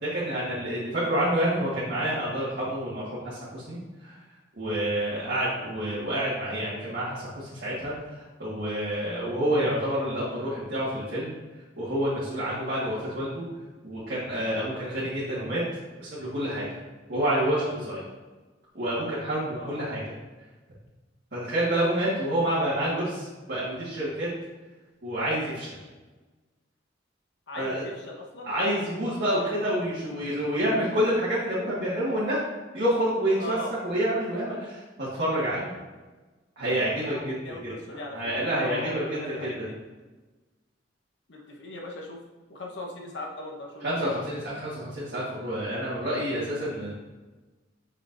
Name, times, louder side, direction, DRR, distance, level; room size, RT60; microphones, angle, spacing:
voice 1, 0.0-3.8 4.6-11.3 11.8-13.4 13.8-15.6 16.0-16.8 17.1-18.0 18.7-20.0 21.3-24.3 25.0-25.7 27.6-27.8 28.4-32.4 32.7-33.6 33.8-35.7 36.6-37.7 38.1-39.7 43.8-46.9, right 1 dB, 60° right, -10 dB, 1.6 m, -28 dB
voice 2, 19.5-19.9 27.5-28.6 33.4-33.8 37.0-39.8 41.3-42.2 42.5-44.1, left 1 dB, 70° left, 0 dB, 1.1 m, -39 dB
6.3 x 6.0 x 2.6 m, 1.2 s
head